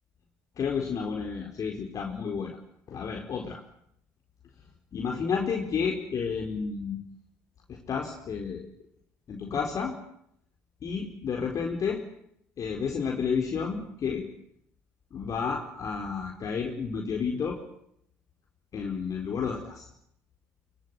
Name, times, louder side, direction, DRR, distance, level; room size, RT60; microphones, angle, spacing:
voice 1, 0.6-2.6 2.9-3.6 4.9-7.0 7.7-8.7 9.3-10.0 10.8-12.0 12.6-14.3 15.1-17.6 18.7-19.9, left 6 dB, 45° left, 1 dB, 4.6 m, -31 dB
23.5 x 22.5 x 9.6 m, 0.73 s
hypercardioid pair, 60°, 8 cm